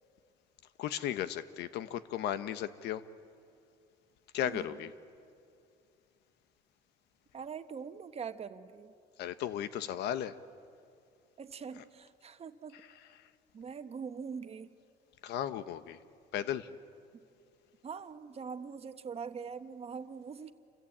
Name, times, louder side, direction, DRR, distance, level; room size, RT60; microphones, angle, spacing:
voice 1, 0.8-3.0 4.3-4.9 9.2-10.3 15.2-16.0 16.3-16.7, left 10 dB, 80° left, 13 dB, 1.1 m, -35 dB
voice 2, 4.5-4.8 7.3-8.9 11.4-12.8 13.5-14.7 17.8-20.5, right 6 dB, 35° right, 9 dB, 1.3 m, -43 dB
28.5 x 23.5 x 8.7 m, 2.4 s
cardioid pair, 110°, 17 cm